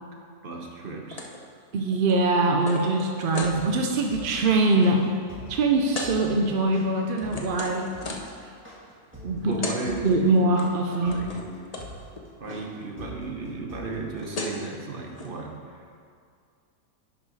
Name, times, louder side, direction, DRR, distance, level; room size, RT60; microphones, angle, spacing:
voice 1, 0.4-1.2 9.5-10.4 11.0-11.7 12.4-15.8, right 3 dB, 40° right, 0 dB, 1.0 m, -35 dB
sound 1, 1.1-1.4 1.7-3.6 4.1-4.3 4.6-4.9 5.9-6.1 6.8-8.4 9.2-9.3 9.5-9.8 10.1-10.6 10.9-11.5 11.7-11.9 12.1-12.6 13.9-14.0 14.1-14.7 15.1-15.3, left 2 dB, 40° left, 0.6 m, -36 dB
voice 2, 1.7-5.0 5.5-7.9 9.2-9.6 9.9-11.2, right 2 dB, 65° right, 1 dB, 0.5 m, -23 dB
sound 2, 3.4-14.5, equal, 10° right, 1.5 m, -43 dB
10.5 x 5.6 x 4.1 m, 2.3 s
omnidirectional pair, 1.7 m